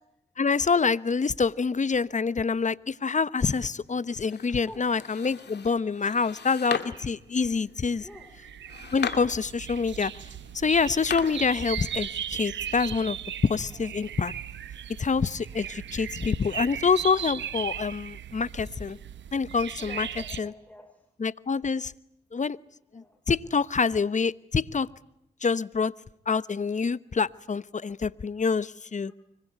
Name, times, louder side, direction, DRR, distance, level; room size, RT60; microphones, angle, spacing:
voice 1, 0.4-8.1 8.9-10.1 10.5-13.2 13.4-14.3 15.0-19.0 19.3-20.1 20.4-20.5 21.2-21.9 22.3-22.6 22.9-24.9 25.4-25.9 26.3-29.1, left 5 dB, 40° left, 18 dB, 1.1 m, -26 dB
sound 1, 3.5-12.0, left 6 dB, 65° left, 2.4 m, -40 dB
voice 2, 4.5-4.9 8.0-8.3 13.7-13.9 15.5-15.7 19.8-21.0 22.9-23.1 29.1-29.2, left 1 dB, 10° left, 5 dB, 5.3 m, -48 dB
sound 2, 6.0-7.1 7.7-20.4, right 10 dB, 75° right, 1.2 m, -38 dB
25.0 x 23.0 x 9.5 m, 0.76 s
supercardioid pair, 40°, 19 cm